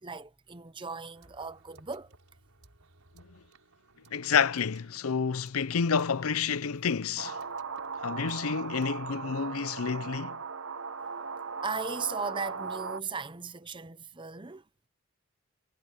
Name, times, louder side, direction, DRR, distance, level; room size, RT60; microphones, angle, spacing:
voice 1, 0.0-2.1 11.6-14.6, right 5 dB, 20° right, 0.8 m, -37 dB
sound 1, 1.1-8.9, right 3 dB, 85° right, 4.3 m, -61 dB
voice 2, 4.1-7.4 8.0-10.4, left 6 dB, 80° left, 0.6 m, -29 dB
sound 2, 7.2-13.0, right 5 dB, 65° right, 1.0 m, -38 dB
head